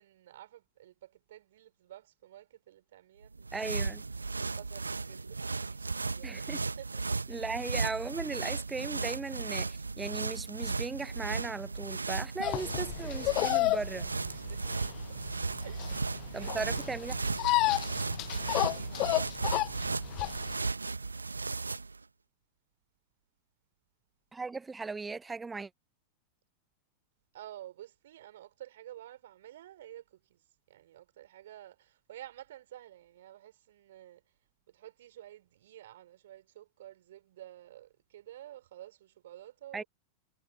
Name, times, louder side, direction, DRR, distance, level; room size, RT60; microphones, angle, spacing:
voice 1, 0.0-3.6 4.6-6.4 6.8-7.0 7.4-7.5 13.8-15.2 15.6-16.6 16.9-17.1 18.7-19.2 27.3-34.2 34.7-39.9, right 13 dB, 60° right, 4.9 m, -51 dB
sound 1, 3.2-22.0, right 4 dB, 80° right, 1.3 m, -35 dB
voice 2, 3.5-4.0 6.2-6.7 7.3-14.1 16.3-17.2 24.3-25.7 39.7-39.8, right 4 dB, 10° right, 0.6 m, -37 dB
sound 2, 12.4-20.5, left 20 dB, 40° left, 0.9 m, -31 dB
figure-of-eight pair, 90°, 0 cm